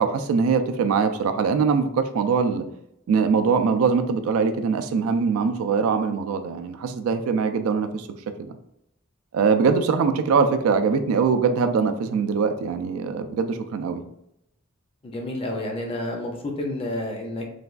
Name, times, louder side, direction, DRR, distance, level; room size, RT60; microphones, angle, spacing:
voice 1, 0.0-2.7 3.1-8.1 8.4-8.6 9.3-14.0, right 5 dB, 85° right, 8 dB, 0.3 m, -22 dB
voice 2, 15.0-17.4, left 1 dB, 25° left, 2 dB, 0.5 m, -30 dB
3.2 x 2.2 x 2.4 m, 0.78 s
head